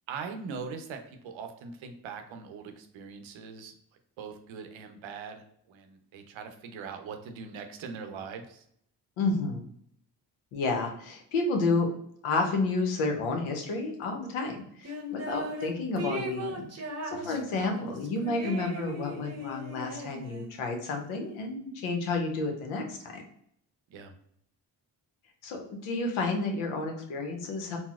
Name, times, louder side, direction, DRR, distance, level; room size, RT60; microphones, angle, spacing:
voice 1, 0.1-3.7 4.2-8.6 17.1-17.4 23.9-24.1, right 5 dB, 70° right, 6 dB, 0.6 m, -41 dB
voice 2, 9.2-9.6 10.5-11.9 12.2-16.7 17.0-23.2 25.4-27.8, left 3 dB, 85° left, 2 dB, 0.7 m, -30 dB
sound 1, 14.8-15.7 16.0-20.6, equal, 35° right, 0.7 m, -38 dB
4.0 x 2.0 x 2.3 m, 0.68 s
supercardioid pair, 45°, 48 cm